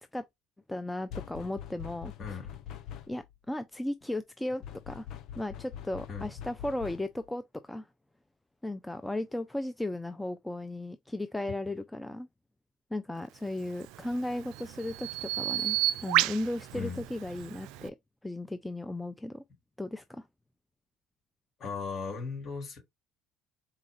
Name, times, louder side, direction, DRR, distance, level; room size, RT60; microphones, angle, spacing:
voice 1, 0.7-2.1 3.1-5.1 5.4-7.9 8.6-12.3 12.9-15.8 16.0-18.0 18.2-19.4 19.8-20.3, left 1 dB, 10° left, 0.4 m, -35 dB
sound 1, 1.1-3.3 4.6-7.3, left 10 dB, 60° left, 0.8 m, -44 dB
voice 2, 2.2-2.6 6.1-6.3 16.7-17.0 21.6-22.8, left 5 dB, 45° left, 3.3 m, -37 dB
Bird vocalization bird call bird song, 13.7-17.9, right 16 dB, 75° right, 0.3 m, -32 dB
4.1 x 2.4 x 3.9 m
hypercardioid pair, 75°, 0 cm